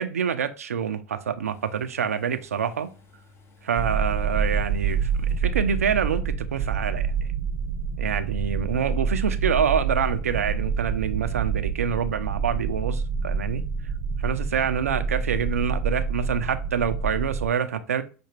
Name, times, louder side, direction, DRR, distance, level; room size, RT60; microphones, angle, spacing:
voice 1, 0.0-2.9 3.6-7.1 8.0-13.6 14.2-18.0, right 7 dB, 90° right, 0.4 m, -26 dB
sound 1, 1.4-5.9 6.1-6.2, left 3 dB, 35° left, 0.9 m, -55 dB
sound 2, 3.8-17.5, right 6 dB, 45° right, 0.6 m, -27 dB
5.8 x 2.1 x 3.1 m
hypercardioid pair, 90°, 8 cm